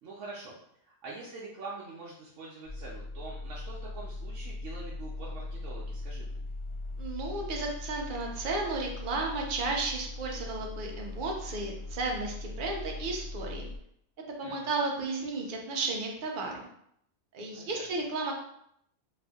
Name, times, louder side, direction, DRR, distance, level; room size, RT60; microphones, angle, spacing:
voice 1, 0.0-6.4 14.4-14.7 17.5-18.0, right 3 dB, 85° right, -5 dB, 1.0 m, -45 dB
sound 1, 2.6-13.8, left 2 dB, 55° left, 0.6 m, -40 dB
voice 2, 7.0-13.7 14.4-16.7 17.3-18.3, right 3 dB, 50° right, 0 dB, 0.7 m, -33 dB
2.6 x 2.5 x 3.4 m, 0.72 s
omnidirectional pair, 1.3 m